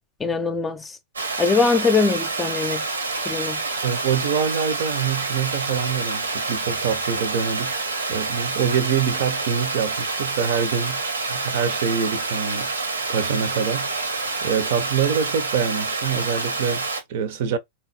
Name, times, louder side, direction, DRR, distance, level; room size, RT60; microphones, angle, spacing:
voice 1, 0.2-1.0 1.4-2.8 3.3-3.6, left 4 dB, 15° left, 0.7 m, -22 dB
Water, 1.2-17.0, right 3 dB, 75° right, 1.1 m, -27 dB
voice 2, 3.8-7.8 8.1-12.7 13.1-17.6, right 7 dB, 50° right, 0.8 m, -25 dB
4.0 x 3.0 x 4.2 m
figure-of-eight pair, 95°, 0 cm